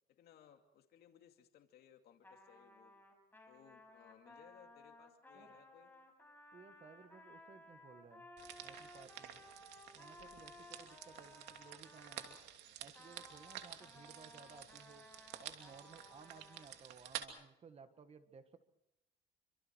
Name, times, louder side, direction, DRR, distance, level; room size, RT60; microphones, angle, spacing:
voice 1, 0.1-2.9 3.5-5.9, left 9 dB, 70° left, 5 dB, 2.5 m, -63 dB
Trumpet, 2.2-12.4 12.9-16.7, left 2 dB, 10° left, 5.8 m, -59 dB
voice 2, 6.5-8.3 8.6-9.4 9.9-12.4 12.8-15.1 15.4-18.6, right 5 dB, 40° right, 9 dB, 1.8 m, -59 dB
sound 1, 8.4-17.3, right 11 dB, 85° right, 2.9 m, -51 dB
28.5 x 25.5 x 4.7 m, 0.86 s
cardioid pair, 110°, 17 cm